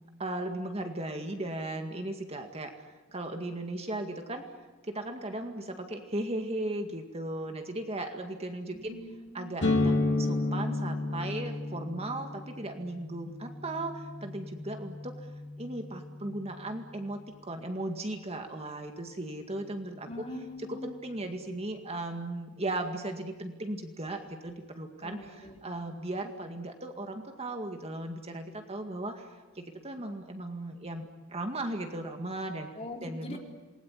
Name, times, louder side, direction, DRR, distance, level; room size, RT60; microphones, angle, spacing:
voice 1, 0.2-2.7 3.1-4.4 4.9-9.0 9.3-15.3 15.6-20.2 20.6-32.7 33.0-33.4, right 1 dB, 30° right, 5 dB, 2.1 m, -37 dB
voice 2, 8.7-9.6 20.1-20.9 25.0-25.6 32.8-33.4, left 1 dB, 30° left, 1 dB, 4.1 m, -42 dB
sound 1, 9.6-17.2, left 2 dB, 60° left, 2.9 m, -33 dB
27.5 x 21.0 x 9.7 m, 1.2 s
head